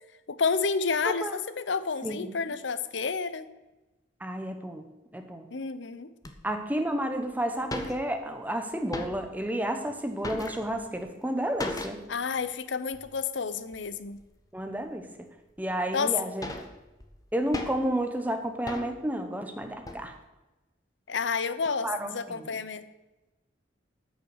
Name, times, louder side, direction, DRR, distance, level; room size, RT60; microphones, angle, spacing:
voice 1, 0.3-3.5 5.5-6.1 12.1-14.2 15.9-16.1 21.1-22.9, left 5 dB, 70° left, 13 dB, 0.7 m, -30 dB
voice 2, 1.0-1.4 2.0-2.3 4.2-4.8 5.1-5.4 6.4-12.0 14.5-15.0 15.6-16.5 17.3-20.1 21.8-22.5, right 1 dB, 10° right, 6 dB, 1.0 m, -31 dB
sound 1, 6.2-6.3 7.0-7.1 7.3-7.4 7.6-8.4 8.7-9.5 9.8-11.0 11.6-12.2 12.5-12.6 12.9-13.1 13.7-14.2 14.8-14.9 15.6-15.7 16.1-18.0 18.7-19.1 19.6-20.1, left 2 dB, 20° left, 0.9 m, -38 dB
13.0 x 6.0 x 6.3 m, 1.1 s
head